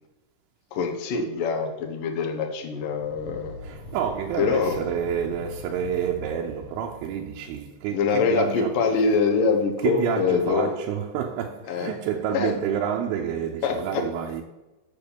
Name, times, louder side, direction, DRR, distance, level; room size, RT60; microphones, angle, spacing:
voice 1, 0.7-3.5 4.4-4.8 7.9-10.7 11.7-11.9 12.3-12.5 13.6-14.0, left 5 dB, 80° left, 1.9 m, -24 dB
sound 1, 2.8-8.0, left 1 dB, 35° right, 1.7 m, -42 dB
voice 2, 3.6-8.8 9.8-14.4, right 8 dB, 80° right, 3.3 m, -29 dB
9.2 x 7.5 x 6.9 m
omnidirectional pair, 5.8 m